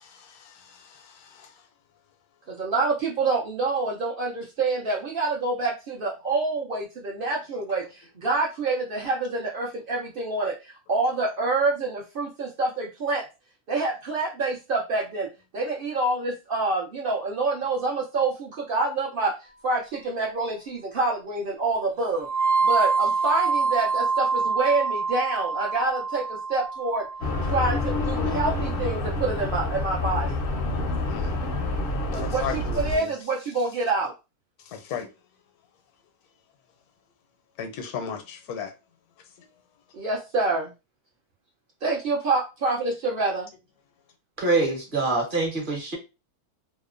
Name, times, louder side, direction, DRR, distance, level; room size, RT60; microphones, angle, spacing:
voice 1, 0.0-1.5 31.1-31.3 32.1-33.1 34.7-35.1 37.6-38.7, left 7 dB, 80° left, 1.1 m, -36 dB
voice 2, 2.5-13.2 13.7-15.3 15.5-19.3 19.6-22.3 22.6-27.0 27.5-30.4 32.1-34.1 39.9-40.7 41.8-43.5, right 3 dB, 65° right, 0.5 m, -27 dB
sound 1, 22.2-28.2, right 4 dB, 85° right, 1.1 m, -26 dB
sound 2, 27.2-33.0, left 2 dB, 60° left, 0.6 m, -27 dB
voice 3, 44.4-46.0, right 3 dB, 40° right, 0.8 m, -24 dB
2.7 x 2.0 x 2.4 m
omnidirectional pair, 1.6 m